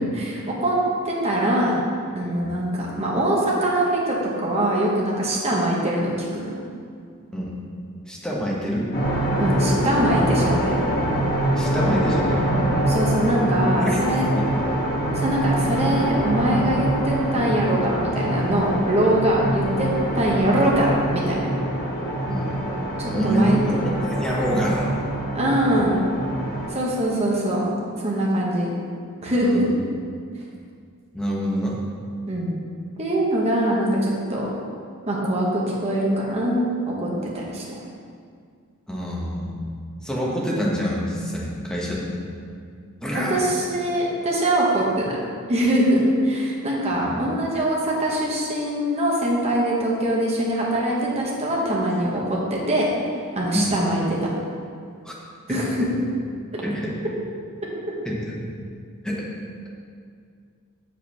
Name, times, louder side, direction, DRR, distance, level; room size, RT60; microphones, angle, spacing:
voice 1, 0.1-0.8 1.0-1.8 2.1-6.5 9.4-10.8 12.9-14.3 15.1-19.9 20.1-21.5 23.0-23.6 25.3-26.0 26.7-27.7 28.0-28.7 29.2-29.6 32.3-32.5 33.0-34.5 35.1-37.8 43.1-45.2 45.5-52.9 53.3-54.0 55.5-55.9 56.5-56.6, right 1 dB, 30° right, -4 dB, 1.1 m, -23 dB
voice 2, 8.1-8.9 11.6-12.5 13.8-14.0 14.3-14.5 22.3-22.5 23.1-23.7 24.1-24.9 25.7-25.8 29.4-29.7 31.1-31.7 38.9-39.6 40.0-42.1 43.0-43.4 46.9-47.2 53.5-53.7 55.0-55.1 55.5-55.6 56.6-56.9 58.0-58.3 59.0-59.3, equal, 5° left, -5 dB, 1.2 m, -26 dB
sound 1, 8.9-26.7, right 1 dB, 45° left, 1.6 m, -24 dB
6.6 x 5.3 x 5.5 m, 2.2 s
head